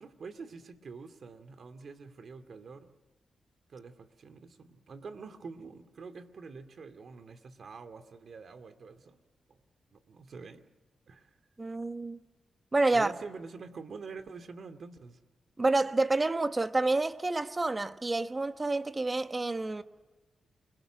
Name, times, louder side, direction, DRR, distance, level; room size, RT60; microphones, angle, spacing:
voice 1, 0.0-2.9 3.7-9.2 9.5-9.6 9.9-10.6 11.1-11.3 12.9-15.2, right 4 dB, 60° right, 2.4 m, -46 dB
voice 2, 11.6-12.2 12.7-13.1 15.6-19.8, right 2 dB, 25° right, 1.3 m, -28 dB
29.5 x 21.5 x 9.0 m
cardioid pair, 75°, 0 cm